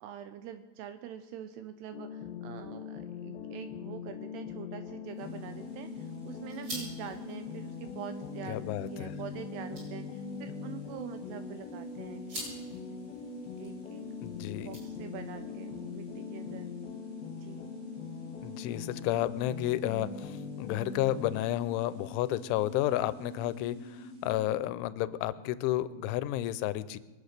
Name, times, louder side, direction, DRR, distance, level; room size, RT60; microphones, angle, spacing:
voice 1, 0.0-12.2 12.5-12.8 13.6-14.0 14.5-16.7 17.4-17.7, right 9 dB, 80° right, 10 dB, 2.4 m, -45 dB
sound 1, 1.9-21.4, left 6 dB, 70° left, 2.5 m, -42 dB
sound 2, 5.0-15.4, right 1 dB, 30° right, 6.9 m, -49 dB
sound 3, 5.2-24.4, equal, 45° right, 3.5 m, -47 dB
voice 2, 8.5-9.1 14.2-14.7 18.4-27.0, left 14 dB, 90° left, 16 dB, 3.1 m, -31 dB
23.0 x 8.6 x 6.6 m, 1.2 s
omnidirectional pair, 5.4 m